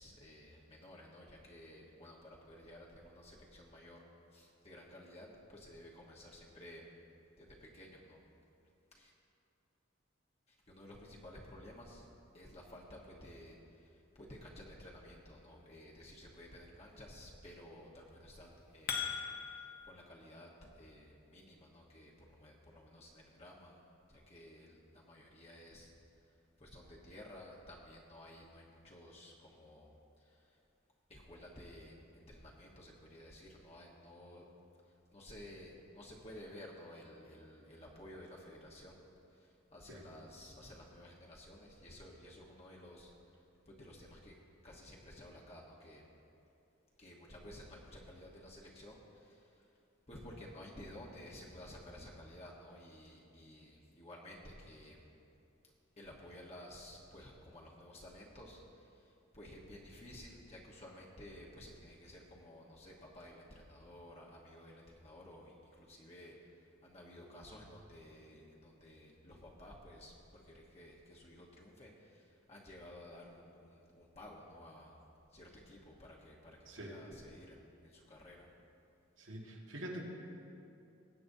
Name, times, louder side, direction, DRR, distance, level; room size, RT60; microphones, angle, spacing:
voice 1, 0.0-4.0 4.3-6.8 7.4-8.2 8.9-9.1 10.5-12.1 12.3-13.6 14.2-19.2 19.8-20.5 20.8-23.8 24.1-25.9 26.6-29.9 30.3-30.4 31.1-34.5 35.1-39.0 39.4-43.1 43.7-44.3 44.6-46.1 47.0-49.5 50.1-55.1 56.0-58.6 59.0-66.3 66.8-72.2 72.5-75.0 75.3-78.5, left 1 dB, 35° left, -3 dB, 1.1 m, -54 dB
sound 1, 18.4-19.9, left 7 dB, 55° left, 1.1 m, -39 dB
voice 2, 76.6-77.0 79.2-80.0, right 1 dB, 85° right, -2 dB, 1.8 m, -45 dB
21.0 x 8.5 x 2.7 m, 2.7 s
head